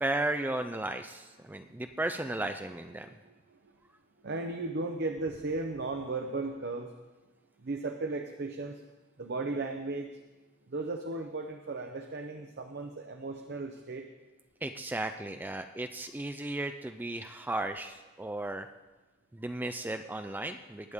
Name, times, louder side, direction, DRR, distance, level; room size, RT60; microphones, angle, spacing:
voice 1, 0.0-3.1 14.6-18.7 19.3-20.9, right 2 dB, 10° right, 7 dB, 0.3 m, -35 dB
voice 2, 3.0-3.7 4.2-7.0 7.6-8.8 9.2-10.1 10.7-14.1, right 3 dB, 50° right, 4 dB, 0.7 m, -36 dB
19.5 x 8.0 x 3.6 m, 1.2 s
head